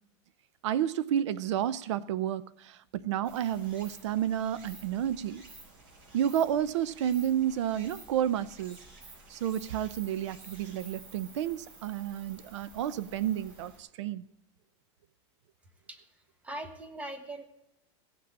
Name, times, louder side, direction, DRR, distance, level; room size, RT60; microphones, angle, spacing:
voice 1, 0.6-5.4 6.1-8.8 9.3-14.3, right 10 dB, 80° right, 18 dB, 0.6 m, -31 dB
Stream, 3.2-13.8, right 2 dB, 55° right, 5.2 m, -52 dB
voice 2, 16.4-17.4, right 1 dB, 10° right, 7 dB, 1.3 m, -40 dB
16.5 x 6.0 x 8.6 m, 0.84 s
supercardioid pair, 155°, 15 cm